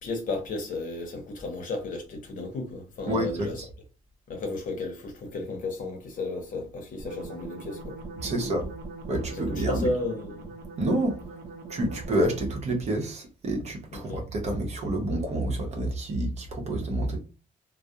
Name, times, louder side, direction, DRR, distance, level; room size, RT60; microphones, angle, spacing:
voice 1, 0.0-3.6 4.3-8.0 8.3-8.5 9.3-10.5 13.9-14.2, left 3 dB, 65° left, 0.7 m, -33 dB
voice 2, 3.1-3.5 8.2-8.7 9.1-9.9 10.8-11.4 11.7-17.2, right 1 dB, 50° right, 0.7 m, -28 dB
sound 1, 7.0-12.8, right 3 dB, 85° right, 0.6 m, -42 dB
2.3 x 2.0 x 2.7 m
cardioid pair, 135°, 15 cm